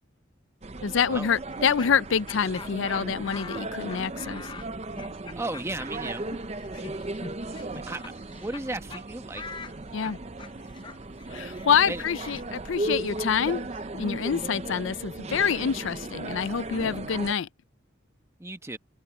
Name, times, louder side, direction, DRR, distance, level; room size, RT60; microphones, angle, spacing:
sound 1, 0.6-17.3, right 2 dB, 30° right, 0.6 m, -36 dB
voice 1, 0.8-4.4 9.9-10.2 11.3-13.7 13.9-17.5, left 7 dB, 70° left, 0.5 m, -26 dB
Laughter, 1.5-8.6 8.9-9.0 9.3-15.1, left 4 dB, 25° left, 0.6 m, -44 dB
voice 2, 5.4-6.2 7.6-8.0 8.3-9.4 11.9-12.0 18.4-18.8, right 2 dB, 15° right, 1.1 m, -34 dB
head